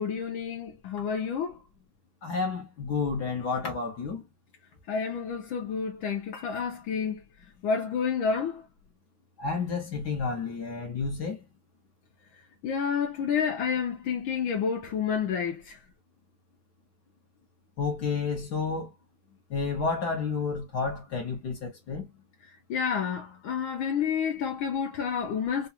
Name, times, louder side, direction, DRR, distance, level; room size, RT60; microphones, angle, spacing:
voice 1, 0.0-1.5 4.9-7.2 7.6-8.6 12.6-15.8 22.7-25.7, left 6 dB, 75° left, 1.5 m, -29 dB
voice 2, 2.2-4.2 9.4-11.4 17.8-18.9 19.5-22.0, left 4 dB, 60° left, 1.3 m, -30 dB
4.7 x 2.3 x 2.7 m
omnidirectional pair, 2.4 m